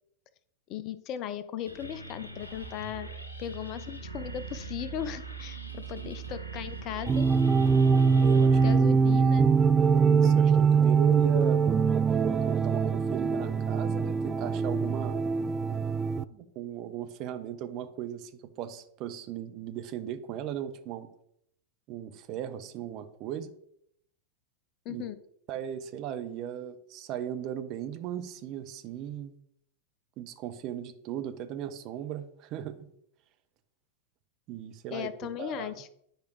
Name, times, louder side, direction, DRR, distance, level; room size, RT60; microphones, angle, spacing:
voice 1, 0.7-3.1 3.4-7.3 8.6-9.5 24.9-25.2 34.9-35.9, left 10 dB, 35° left, 14 dB, 0.5 m, -37 dB
sound 1, 1.6-8.8, right 5 dB, 80° left, 1.3 m, -41 dB
sound 2, 7.1-16.2, right 5 dB, 20° right, 0.3 m, -23 dB
voice 2, 8.2-8.9 10.0-11.6 12.1-15.2 16.3-21.1 21.9-23.5 24.9-25.0 25.5-29.3 30.2-32.8 34.5-35.1 35.4-35.7, right 10 dB, 40° right, 9 dB, 0.7 m, -37 dB
10.5 x 5.0 x 3.1 m, 0.72 s
figure-of-eight pair, 90°, 0 cm